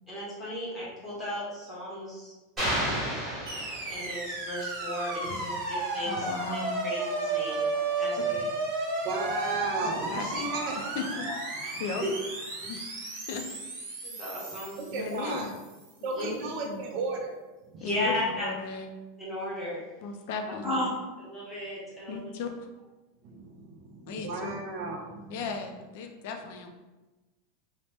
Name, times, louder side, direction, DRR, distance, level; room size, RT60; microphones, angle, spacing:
voice 1, 0.1-2.3 2.7-3.0 3.9-7.6 8.0-8.4 11.2-11.3 11.6-11.7 14.0-14.8 16.1-16.3 17.8-18.5 19.2-19.8 20.6-20.9 21.2-22.3, left 1 dB, 10° left, -8 dB, 0.9 m, -35 dB
sound 1, 2.6-4.3, equal, 15° right, 1.2 m, -31 dB
voice 2, 2.7-3.1 5.2-5.4 9.0-10.8 14.8-15.5 16.0-17.3 17.7-17.9 23.2-25.5, right 3 dB, 45° right, 2 dB, 0.5 m, -35 dB
sound 2, 3.5-15.7, right 3 dB, 65° right, 0.9 m, -33 dB
voice 3, 6.0-6.8 10.1-10.2 10.7-11.3 11.8-12.0 12.7-12.9 13.3-13.4 14.9-15.5 16.4-16.9 17.8-18.9 20.0-20.8 22.1-22.7 24.1-24.5 25.3-26.7, left 4 dB, 55° left, 5 dB, 0.4 m, -36 dB
2.7 x 2.1 x 3.2 m, 1.1 s
supercardioid pair, 170°, 0 cm